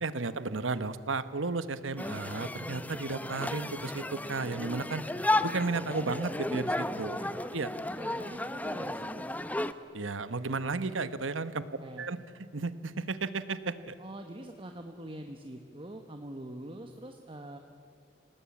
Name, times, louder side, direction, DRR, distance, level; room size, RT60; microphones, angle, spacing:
voice 1, 0.0-5.0 5.4-7.2 7.5-7.7 9.9-11.6 12.0-12.2 12.5-13.9, right 3 dB, 85° right, 13 dB, 1.1 m, -33 dB
sound 1, 2.0-9.7, left 2 dB, 10° left, 0.7 m, -34 dB
voice 2, 7.9-9.3 11.8-12.1 14.0-17.6, right 1 dB, 30° right, 5 dB, 1.2 m, -44 dB
26.5 x 19.0 x 8.7 m, 2.2 s
head